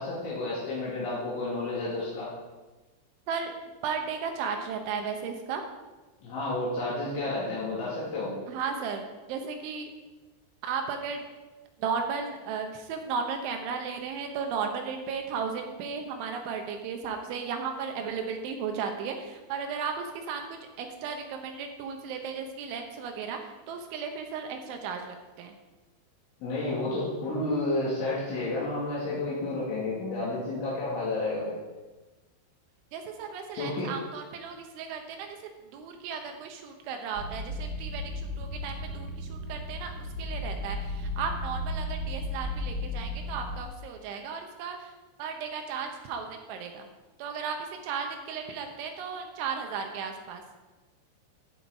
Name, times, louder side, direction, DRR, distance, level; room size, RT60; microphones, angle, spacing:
voice 1, 0.0-2.3 6.2-8.3 26.4-31.5 33.6-33.9, left 2 dB, 75° left, -7 dB, 4.5 m, -31 dB
voice 2, 3.8-5.6 8.5-9.0 9.3-9.9 10.6-11.2 11.8-20.4 20.8-23.4 23.7-25.5 32.9-35.4 35.7-44.9 45.2-46.9 47.2-47.6 47.8-50.4, right 6 dB, 80° right, 4 dB, 3.3 m, -35 dB
sound 1, 37.1-43.6, left 1 dB, 60° right, 1.4 m, -35 dB
14.5 x 5.9 x 4.7 m, 1.2 s
omnidirectional pair, 5.7 m